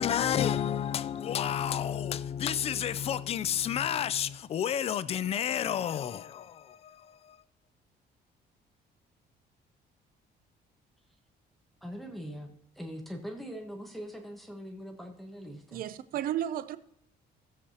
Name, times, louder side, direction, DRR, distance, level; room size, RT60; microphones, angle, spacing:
voice 1, 0.0-7.4, left 9 dB, 35° left, 0.4 m, -30 dB
voice 2, 11.8-12.5 12.7-15.9, equal, ahead, 1.2 m, -42 dB
voice 3, 15.7-16.8, right 11 dB, 55° right, 0.5 m, -33 dB
16.0 x 7.6 x 2.8 m
cardioid pair, 165°, 18 cm